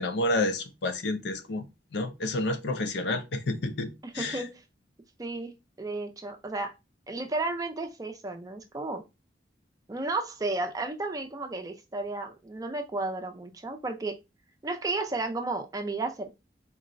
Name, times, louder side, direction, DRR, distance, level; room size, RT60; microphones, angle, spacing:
voice 1, 0.0-1.6 1.9-4.4, left 2 dB, 70° left, 0.5 m, -30 dB
voice 2, 4.0-4.6 5.2-6.7 7.1-9.0 9.9-14.1 14.6-16.3, right 2 dB, 20° right, 0.4 m, -33 dB
3.7 x 2.0 x 2.5 m
head